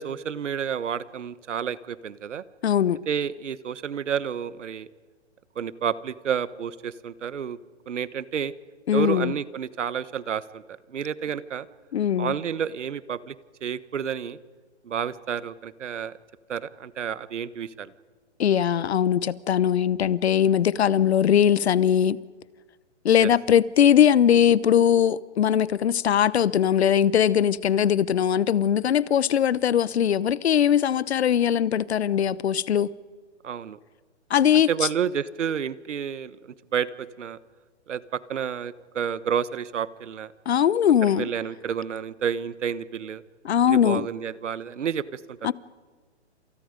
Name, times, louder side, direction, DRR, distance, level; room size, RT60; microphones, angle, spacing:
voice 1, 0.0-2.4 3.1-4.9 5.6-7.6 7.9-8.5 8.9-10.6 10.9-11.7 12.2-13.3 13.6-14.4 14.8-16.1 16.5-17.9 23.2-23.3 33.4-33.8 34.5-36.4 36.7-37.4 37.9-40.3 41.0-43.2 43.7-45.5, right 8 dB, 90° right, 1.3 m, -30 dB
voice 2, 2.6-3.0 8.9-9.3 11.9-12.3 18.4-22.2 23.0-32.9 34.3-34.7 40.5-41.3 43.4-44.1 45.4-45.5, left 9 dB, 65° left, 1.0 m, -20 dB
28.5 x 27.5 x 5.3 m
hypercardioid pair, 170°, 35 cm